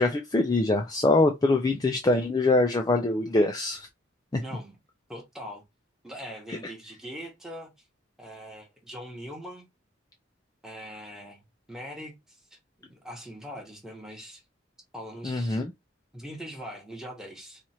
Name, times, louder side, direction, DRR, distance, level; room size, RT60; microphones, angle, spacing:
voice 1, 0.0-3.9 4.3-4.4 6.5-6.6 15.2-15.7, left 2 dB, 20° left, 0.4 m, -24 dB
voice 2, 4.4-4.8 5.1-5.6 6.0-7.7 8.2-9.7 10.6-11.4 11.7-12.4 12.8-14.4 14.9-15.6 16.1-17.6, equal, 5° right, 1.0 m, -41 dB
3.0 x 2.5 x 4.2 m
head